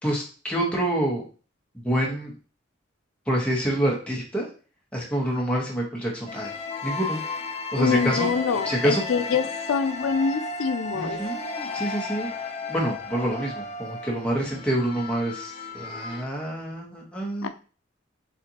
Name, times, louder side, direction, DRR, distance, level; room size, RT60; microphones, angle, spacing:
voice 1, 0.0-1.2 1.8-2.3 3.3-4.5 4.9-6.5 6.8-7.2 7.7-8.3 8.6-9.0 10.9-12.3 12.7-17.5, right 1 dB, 5° left, -3 dB, 1.1 m, -27 dB
sound 1, 6.3-16.2, left 3 dB, 30° left, 0.6 m, -34 dB
voice 2, 7.8-11.2 17.4-17.5, left 5 dB, 85° left, 9 dB, 0.4 m, -25 dB
6.8 x 2.5 x 2.8 m, 0.39 s
head